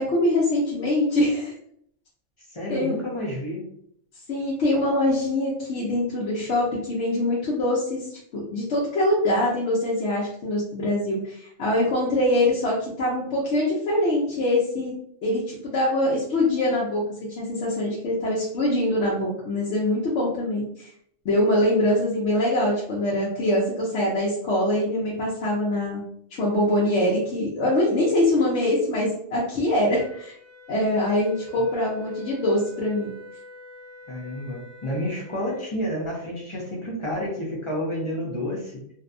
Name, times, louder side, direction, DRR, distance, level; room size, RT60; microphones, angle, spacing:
voice 1, 0.0-1.5 2.7-3.0 4.3-8.1 8.3-14.9 15.2-17.0 17.4-20.9 21.2-26.0 26.4-30.3 30.7-33.1, left 1 dB, 70° left, -6 dB, 0.9 m, -23 dB
voice 2, 2.5-3.7 34.1-38.8, equal, 40° left, -3 dB, 0.5 m, -30 dB
Wind instrument woodwind instrument, 30.0-35.7, left 4 dB, 10° right, 0.5 m, -45 dB
2.6 x 2.2 x 2.5 m, 0.68 s
omnidirectional pair, 1.3 m